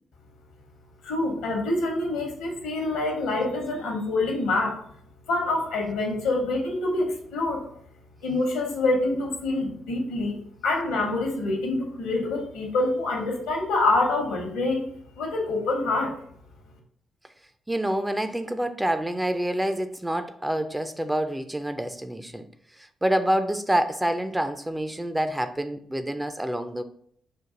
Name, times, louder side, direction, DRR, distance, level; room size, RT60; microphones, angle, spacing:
voice 1, 1.0-4.8 5.3-7.7 8.2-14.9 15.2-16.1, left 2 dB, 70° left, 2 dB, 1.0 m, -26 dB
voice 2, 17.7-22.5 22.8-26.8, right 1 dB, 10° right, 9 dB, 0.4 m, -27 dB
4.5 x 2.5 x 3.7 m, 0.64 s
figure-of-eight pair, 40°, 0 cm